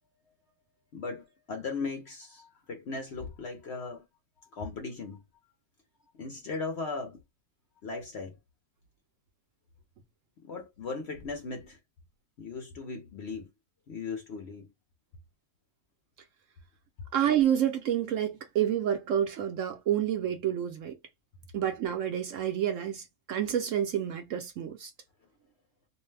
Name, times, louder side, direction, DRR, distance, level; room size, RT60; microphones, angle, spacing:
voice 1, 0.9-4.0 4.5-5.2 6.2-7.2 7.8-8.4 10.4-11.8 12.4-13.5 13.9-14.7, left 4 dB, 60° left, 0.7 m, -37 dB
voice 2, 17.1-21.0 21.5-24.9, right 10 dB, 65° right, 0.9 m, -29 dB
2.6 x 2.1 x 3.2 m
omnidirectional pair, 1.6 m